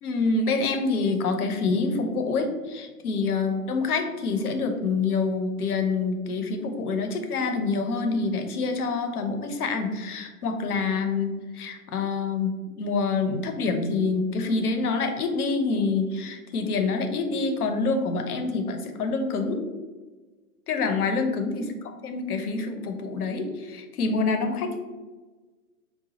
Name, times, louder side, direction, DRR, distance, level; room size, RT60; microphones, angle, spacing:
voice 1, 0.0-19.6 20.7-21.7 22.0-24.8, left 4 dB, 90° left, 6 dB, 0.7 m, -26 dB
4.0 x 2.2 x 2.8 m, 1.3 s
hypercardioid pair, 150°, 44 cm